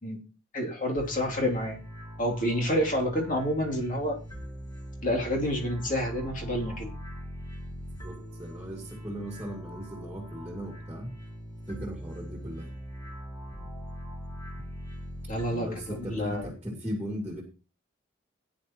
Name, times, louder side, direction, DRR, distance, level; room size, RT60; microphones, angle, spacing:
voice 1, 0.5-1.8 2.2-4.2 5.0-6.9 15.3-16.5, equal, 45° left, 0 dB, 3.1 m, -29 dB
sound 1, 1.0-16.4, equal, 20° left, 2.6 m, -41 dB
voice 2, 8.0-11.1 11.7-12.7 15.5-17.4, equal, 10° right, 0 dB, 2.6 m, -37 dB
17.0 x 9.7 x 3.1 m, 0.34 s
head